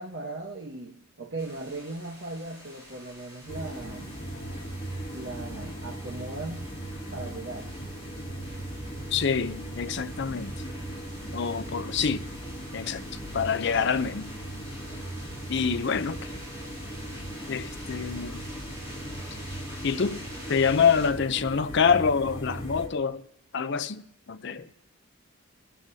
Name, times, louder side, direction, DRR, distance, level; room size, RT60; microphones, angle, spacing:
voice 1, 0.0-4.1 5.1-6.7 7.1-7.7 24.5-24.7, right 2 dB, 50° right, 1.0 m, -38 dB
sound 1, 1.4-21.1, equal, 15° right, 2.7 m, -47 dB
sound 2, 3.5-22.9, right 1 dB, 25° left, 2.6 m, -38 dB
voice 2, 9.1-10.6 11.3-12.3 12.7-14.3 15.5-16.3 17.5-18.4 19.8-20.2 20.5-23.2 23.5-24.7, left 6 dB, 50° left, 0.5 m, -26 dB
26.0 x 11.0 x 2.7 m
head